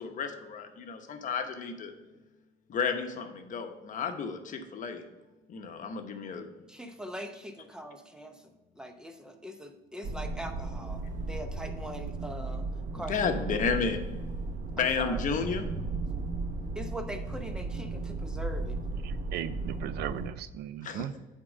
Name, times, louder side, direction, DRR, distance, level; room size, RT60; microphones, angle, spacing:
voice 1, 0.0-1.9 2.7-5.0 5.5-6.5 12.9-14.0 14.7-15.7 20.8-21.2, left 5 dB, 50° left, 6 dB, 0.9 m, -32 dB
voice 2, 6.7-8.4 8.8-11.0 11.3-12.6 12.9-13.6 14.8-15.2 16.8-18.8, equal, 5° right, 6 dB, 0.8 m, -41 dB
sound 1, 10.0-20.3, right 3 dB, 50° right, 0.9 m, -35 dB
voice 3, 19.0-21.2, right 11 dB, 70° right, 14 dB, 0.4 m, -37 dB
8.4 x 3.7 x 5.2 m, 1.1 s
cardioid pair, 110°, 17 cm